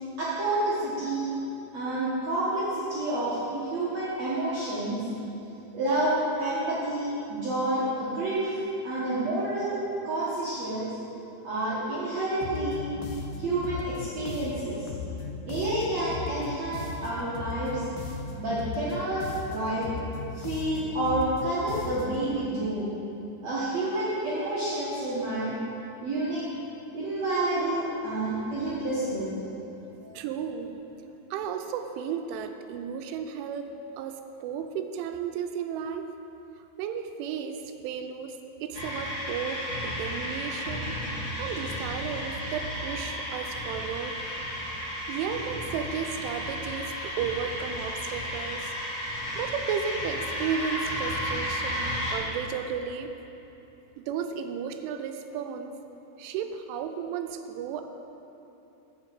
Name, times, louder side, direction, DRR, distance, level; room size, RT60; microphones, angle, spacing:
voice 1, 0.2-1.3 1.7-5.0 5.7-8.6 8.8-10.9 11.4-12.9 13.4-14.9 15.5-17.8 18.4-19.9 20.3-22.9 23.4-25.6 26.0-26.5 26.9-29.4 30.0-30.1, right 1 dB, 60° right, -10 dB, 1.8 m, -29 dB
sound 1, 12.4-22.3, left 5 dB, 80° left, 2.3 m, -37 dB
voice 2, 30.1-30.7 31.3-33.7 34.0-36.2 36.8-41.0 41.4-44.2 45.1-48.7 49.4-53.2 54.0-55.7 56.2-57.8, right 7 dB, 90° right, 7 dB, 3.1 m, -34 dB
sound 2, 38.7-52.1, equal, 40° left, 1.8 m, -33 dB
7.5 x 7.2 x 7.9 m, 3.0 s
omnidirectional pair, 5.4 m